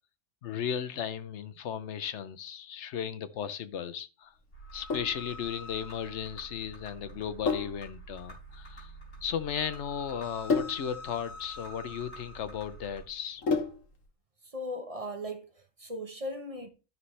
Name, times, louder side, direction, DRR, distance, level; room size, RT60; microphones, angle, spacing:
voice 1, 0.4-4.3 4.7-8.9 9.2-13.4, left 8 dB, 70° left, 0.9 m, -35 dB
sound 1, 4.5-13.0, equal, 50° left, 4.0 m, -46 dB
Sink (filling or washing), 4.6-14.0, left 4 dB, 90° left, 1.7 m, -35 dB
voice 2, 14.4-16.7, equal, 30° right, 1.0 m, -38 dB
12.5 x 5.6 x 3.2 m
omnidirectional pair, 1.3 m